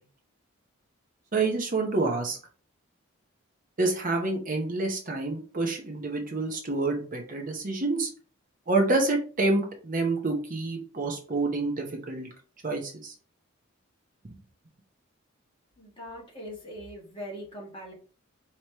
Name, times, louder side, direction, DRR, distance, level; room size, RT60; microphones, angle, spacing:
voice 1, 1.3-2.4 3.8-8.1 8.7-12.3 12.6-13.1, right 3 dB, 40° right, 2 dB, 0.7 m, -28 dB
voice 2, 15.8-17.9, equal, 25° left, -3 dB, 1.6 m, -41 dB
4.6 x 2.9 x 2.9 m, 0.39 s
head